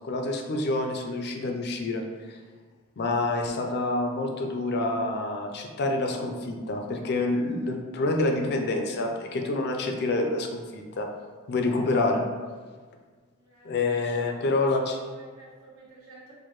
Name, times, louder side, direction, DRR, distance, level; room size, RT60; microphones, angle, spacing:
voice 1, 0.0-2.4 3.0-11.1 11.5-12.2 13.6-15.0, left 2 dB, 50° left, 3 dB, 0.4 m, -27 dB
voice 2, 13.4-13.7 14.2-16.3, right 2 dB, 80° right, -5 dB, 1.1 m, -52 dB
4.5 x 2.1 x 3.0 m, 1.5 s
head